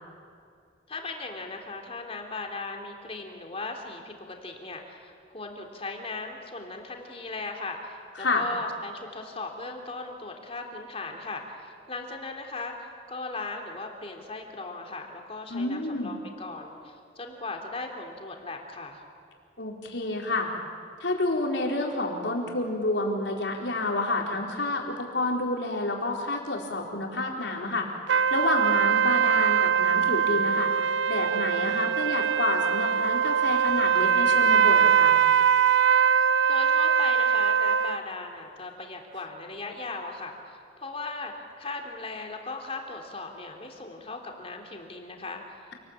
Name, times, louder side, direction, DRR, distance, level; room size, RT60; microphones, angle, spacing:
voice 1, 0.9-19.0 36.5-45.7, left 3 dB, 30° left, 2 dB, 3.2 m, -38 dB
voice 2, 15.5-16.1 19.6-20.5 21.0-27.9 28.3-30.7 31.1-35.2, left 2 dB, 70° left, 0 dB, 4.4 m, -29 dB
sound 1, 28.1-38.0, right 7 dB, 80° right, 0.6 m, -22 dB
28.0 x 20.0 x 9.0 m, 2.3 s
head